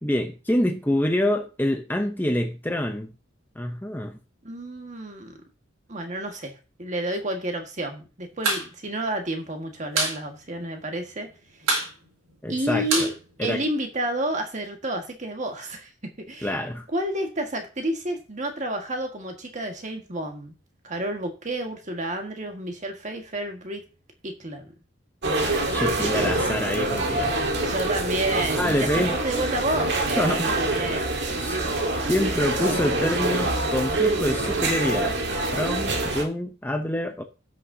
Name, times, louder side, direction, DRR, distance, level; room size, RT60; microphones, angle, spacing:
voice 1, 0.0-3.1 3.6-4.2 12.4-13.1 13.4-13.6 16.4-16.9 25.4-27.3 28.5-29.2 30.2-30.5 31.3-31.6 32.1-35.2 35.5-37.2, left 1 dB, 10° left, 0.7 m, -26 dB
voice 2, 4.4-5.4 5.9-6.5 6.8-11.3 12.5-13.1 13.4-15.9 16.2-16.6 16.9-20.5 20.8-23.8 24.2-24.7 25.9-26.1 27.6-32.1 32.5-32.9, right 1 dB, 35° right, 1.7 m, -30 dB
sound 1, 8.3-8.7 8.9-9.0 9.3-10.2 10.5-10.6 10.9-11.3 11.6-14.0, right 3 dB, 75° right, 4.3 m, -26 dB
sound 2, 25.2-36.2, right 2 dB, 55° right, 1.7 m, -25 dB
16.0 x 6.4 x 2.8 m
head